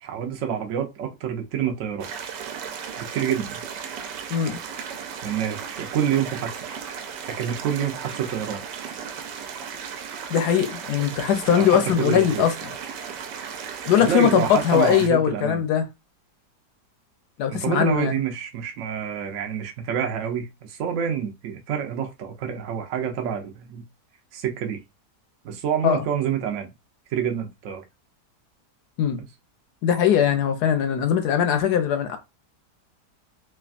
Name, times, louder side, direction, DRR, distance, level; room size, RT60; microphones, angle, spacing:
voice 1, 0.0-2.1 3.0-3.6 5.2-6.6 7.3-8.6 11.5-12.4 14.0-15.6 17.5-23.8 24.3-24.8 25.4-26.7 27.1-27.8 29.2-29.3, right 8 dB, 65° right, 0.8 m, -27 dB
sound 1, 2.0-15.1, right 7 dB, 85° right, 1.2 m, -35 dB
voice 2, 10.3-12.5 13.9-15.8 17.4-18.1 25.8-26.0 29.0-29.2 29.8-32.2, left 9 dB, 75° left, 1.1 m, -20 dB
3.3 x 2.2 x 2.4 m
omnidirectional pair, 1.8 m